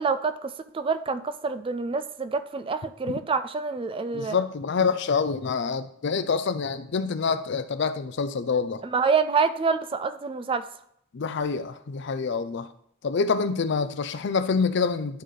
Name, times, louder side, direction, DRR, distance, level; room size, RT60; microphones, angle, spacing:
voice 1, 0.0-4.4 8.8-10.7, right 5 dB, 25° right, 11 dB, 0.4 m, -27 dB
voice 2, 4.1-8.8 11.1-12.7 13.0-15.2, left 5 dB, 60° left, 12 dB, 0.5 m, -26 dB
11.0 x 4.1 x 3.2 m, 0.72 s
head